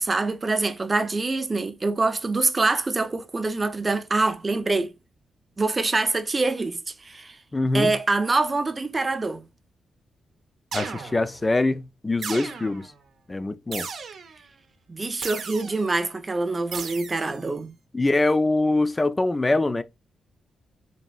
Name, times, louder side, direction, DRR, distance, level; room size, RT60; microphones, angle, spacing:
voice 1, 0.0-4.9 5.6-7.4 7.7-9.5 14.9-17.8, right 3 dB, 30° right, 0.6 m, -25 dB
voice 2, 7.5-7.9 10.7-12.9 13.3-13.9 17.9-19.8, left 2 dB, 25° left, 0.4 m, -23 dB
sound 1, 10.7-11.4 12.2-12.9 13.7-14.4 15.2-15.9 16.7-17.4, right 5 dB, 70° right, 0.7 m, -35 dB
4.1 x 2.6 x 2.3 m
cardioid pair, 70°, 0 cm